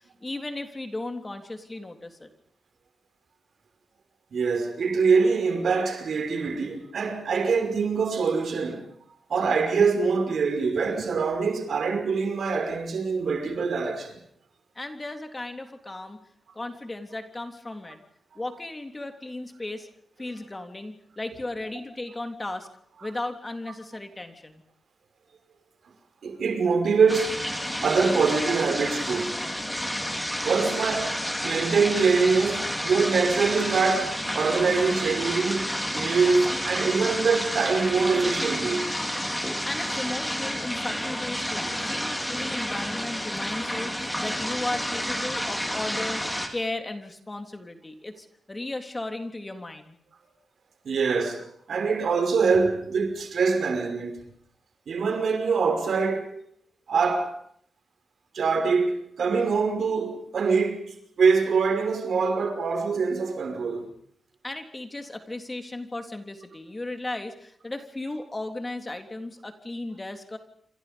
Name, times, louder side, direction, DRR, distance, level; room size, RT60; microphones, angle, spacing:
voice 1, 0.0-2.3 14.8-16.2 16.5-18.0 18.4-19.9 20.2-22.7 23.0-24.6 39.7-46.2 46.5-50.0 64.4-70.4, left 2 dB, 20° left, 3.4 m, -35 dB
voice 2, 4.3-8.9 9.3-14.2 26.2-29.4 30.4-31.2 31.4-38.8 50.8-54.2 54.9-56.4 56.9-57.4 58.3-63.9, right 5 dB, 75° right, 5.6 m, -24 dB
sound 1, 27.1-46.5, equal, 5° left, 4.5 m, -30 dB
28.0 x 26.5 x 5.4 m
wide cardioid pair, 105°, 0 cm